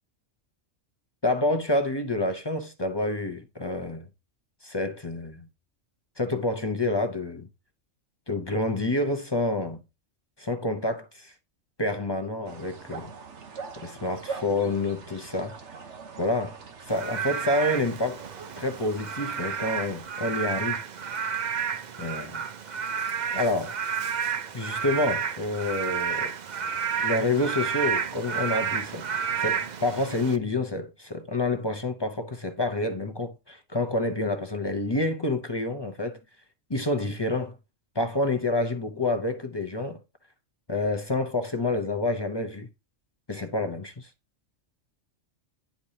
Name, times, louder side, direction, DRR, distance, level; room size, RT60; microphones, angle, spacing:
voice 1, 1.2-4.1 4.6-5.5 6.2-7.5 8.3-9.8 10.4-11.3 11.8-13.1 13.8-15.5 16.2-16.6 16.9-18.2 18.6-20.8 22.0-22.4 23.3-23.7 24.5-26.3 27.0-36.2 36.7-37.6 37.9-40.0 40.7-42.7 43.3-44.1, left 2 dB, 25° left, 0.7 m, -28 dB
sound 1, 12.4-20.0, right 5 dB, 65° right, 1.4 m, -43 dB
Frog / Rain, 16.9-30.4, right 7 dB, 45° right, 0.6 m, -31 dB
10.5 x 4.7 x 2.7 m
omnidirectional pair, 1.3 m